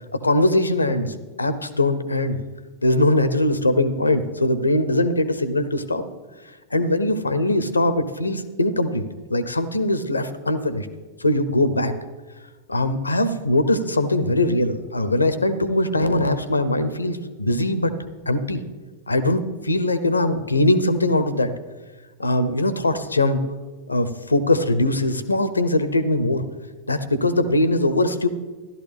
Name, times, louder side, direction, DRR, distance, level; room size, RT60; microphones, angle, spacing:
voice 1, 0.2-2.4 2.8-6.0 6.7-10.9 11.2-11.9 12.7-17.9 18.3-18.6 19.1-21.5 22.2-23.4 23.9-26.4 26.9-28.3, left 1 dB, 80° left, 13 dB, 0.7 m, -21 dB
13.5 x 12.0 x 3.5 m, 1.3 s
figure-of-eight pair, 90°, 0 cm